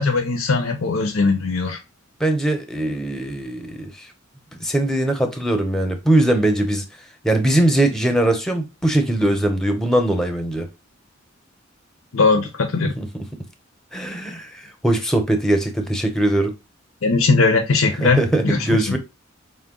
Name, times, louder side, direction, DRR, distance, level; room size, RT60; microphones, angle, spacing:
voice 1, 0.0-1.8 12.1-12.9 17.0-19.0, left 3 dB, 80° left, 0.7 m, -19 dB
voice 2, 2.2-4.1 4.6-6.8 7.2-10.7 13.0-13.1 13.9-16.5 18.0-19.0, right 1 dB, 5° left, 0.6 m, -21 dB
5.0 x 2.2 x 3.6 m
head